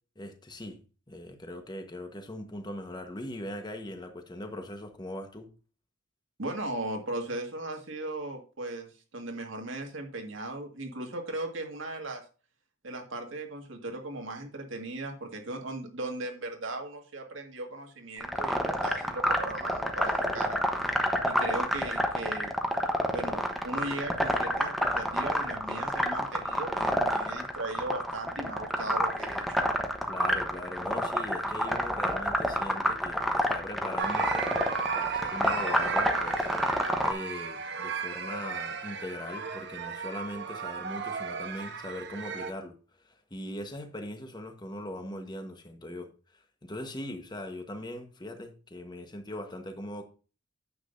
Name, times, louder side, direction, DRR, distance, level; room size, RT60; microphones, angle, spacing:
voice 1, 0.1-0.8 1.1-5.5 30.1-34.5 34.9-36.5 37.0-50.0, left 1 dB, 20° left, 1.2 m, -40 dB
voice 2, 6.4-12.2 12.8-20.7 21.2-22.6 23.1-29.6, right 2 dB, 75° right, 1.9 m, -37 dB
sound 1, 18.2-37.1, equal, ahead, 0.9 m, -28 dB
sound 2, 34.0-42.5, right 5 dB, 60° right, 1.0 m, -35 dB
9.6 x 7.7 x 2.6 m
head